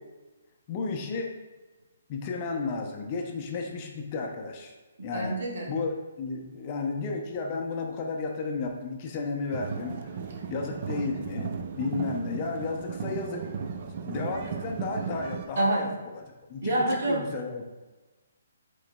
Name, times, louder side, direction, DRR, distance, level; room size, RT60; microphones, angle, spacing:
voice 1, 0.7-1.3 2.1-4.7 5.0-5.4 5.7-10.1 10.5-13.5 14.1-17.6, left 4 dB, 30° left, 2 dB, 0.5 m, -33 dB
voice 2, 5.1-5.7 15.6-15.9 16.6-17.2, right 1 dB, 65° right, -3 dB, 1.3 m, -26 dB
sound 1, 9.5-15.5, right 6 dB, 40° right, 0.4 m, -35 dB
4.7 x 3.8 x 2.2 m, 1.2 s
hypercardioid pair, 160°, 0 cm